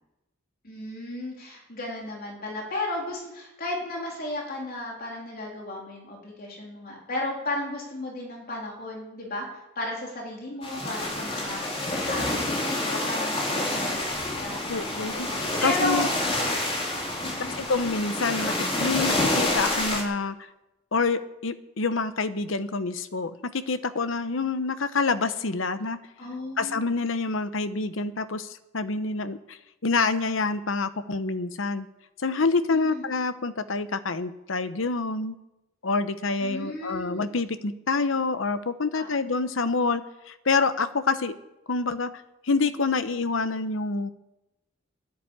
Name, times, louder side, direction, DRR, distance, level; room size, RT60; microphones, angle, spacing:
voice 1, 0.6-9.5 9.8-14.1 14.4-14.6 14.9-16.5 17.2-17.6 26.2-26.9 32.7-33.0 36.4-37.2 38.9-39.1, left 2 dB, 50° left, -2 dB, 3.6 m, -34 dB
sound 1, 10.6-20.0, left 1 dB, 30° left, 3.1 m, -28 dB
voice 2, 14.7-16.1 17.6-20.3 20.9-26.0 26.6-31.9 32.2-35.3 35.8-41.4 41.7-42.1 42.4-44.1, left 4 dB, 70° left, 12 dB, 0.9 m, -27 dB
11.0 x 10.5 x 8.7 m, 0.96 s
head